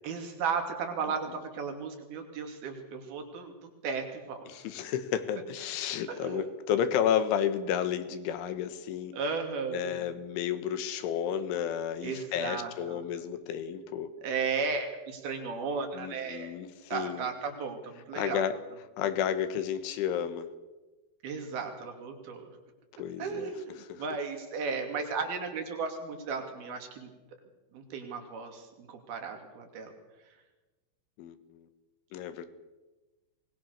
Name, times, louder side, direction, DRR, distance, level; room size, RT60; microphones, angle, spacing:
voice 1, 0.0-4.5 6.1-6.4 9.1-10.1 12.0-13.0 14.2-16.5 16.9-18.4 21.2-22.5 23.2-27.1 27.7-29.9, right 5 dB, 55° right, 5 dB, 4.4 m, -35 dB
voice 2, 4.5-9.2 9.7-14.1 15.9-17.3 18.1-18.5 19.0-20.5 23.0-23.5 23.8-24.0 31.2-31.7 32.1-32.5, left 9 dB, 80° left, 10 dB, 3.8 m, -32 dB
24.5 x 20.5 x 6.7 m, 1.2 s
omnidirectional pair, 5.5 m